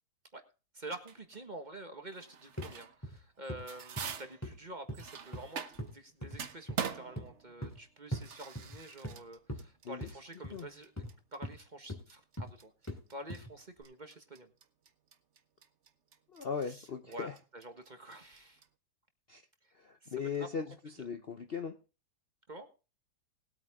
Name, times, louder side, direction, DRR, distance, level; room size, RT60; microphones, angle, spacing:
voice 1, 0.7-11.0 11.3-14.5 16.6-18.6 19.6-19.7 20.0-20.1 20.4-20.5 22.5-22.7, right 1 dB, 30° right, 7 dB, 1.4 m, -48 dB
sound 1, 1.1-1.4 2.1-3.0 3.4-6.0 6.3-18.7, right 7 dB, 50° right, 1.2 m, -44 dB
sound 2, 2.6-2.7 3.0-3.2 3.5-3.7 4.0-4.1 4.4-4.5 4.9-5.5 5.8-5.9 6.2-6.4 6.7-6.9 7.2-7.3 7.6-7.8 8.1-8.3 8.5-9.2 9.5-9.6 10.0-10.1 10.4-10.6 11.0-11.1 11.4-11.6 11.9-12.0 12.4-12.5 12.9-13.0 13.3-13.5 13.8-13.9, equal, 10° left, 2.4 m, -40 dB
voice 2, 16.3-17.3 19.3-19.4 19.7-21.8, left 6 dB, 45° left, 7 dB, 0.8 m, -38 dB
19.5 x 8.8 x 3.6 m, 0.32 s
omnidirectional pair, 1.8 m